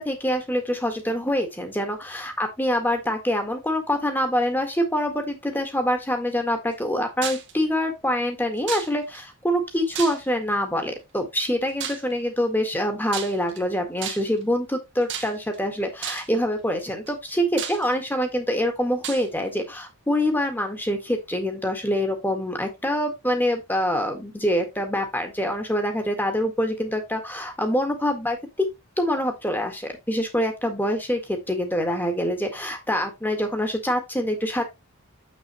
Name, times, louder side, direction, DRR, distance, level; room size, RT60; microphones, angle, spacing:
voice 1, 0.0-2.3 2.6-28.4 29.0-34.6, equal, 10° left, 5 dB, 1.8 m, -25 dB
sound 1, 7.2-7.5 8.7-9.2 9.9-10.5 11.8-12.1 13.1-13.6 14.0-14.4 15.1-15.6 16.0-16.4 17.1-17.2 17.6-18.2 19.0-19.3, right 9 dB, 55° right, 1.3 m, -33 dB
7.0 x 6.6 x 3.1 m, 0.22 s
head